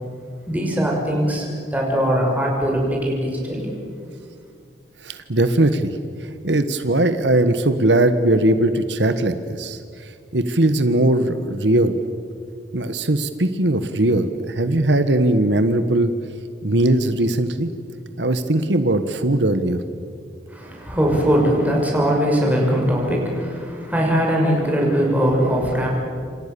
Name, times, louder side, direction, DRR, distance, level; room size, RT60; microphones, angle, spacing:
voice 1, 0.5-1.4 1.7-3.8 20.5-25.9, equal, 10° right, -1 dB, 6.1 m, -20 dB
voice 2, 5.0-5.9 6.4-9.8 10.3-12.0 12.7-16.1 16.6-17.7 18.2-19.8, right 1 dB, 85° right, 10 dB, 1.5 m, -19 dB
28.5 x 27.0 x 7.0 m, 2.2 s
head